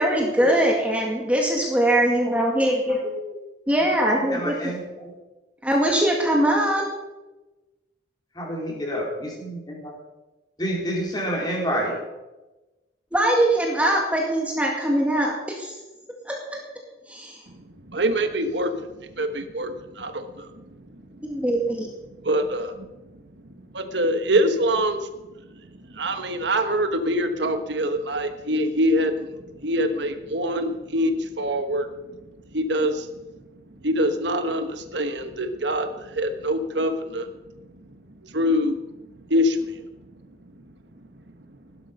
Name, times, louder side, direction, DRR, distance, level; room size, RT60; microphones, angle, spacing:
voice 1, 0.0-3.0 3.7-4.5 5.6-6.8 13.1-15.7 16.3-16.6 17.1-17.4 21.2-21.9, right 1 dB, 10° right, -1 dB, 2.0 m, -22 dB
voice 2, 4.1-5.1 8.3-9.9 10.6-11.9, equal, 25° left, -2 dB, 4.2 m, -28 dB
voice 3, 17.5-20.9 21.1-21.2 22.2-22.9 23.7-25.1 25.5-31.9 32.5-33.1 33.8-37.3 37.6-37.9 38.2-38.8 39.3-39.9, equal, 75° right, 8 dB, 1.3 m, -25 dB
16.0 x 12.0 x 5.4 m, 1.1 s
head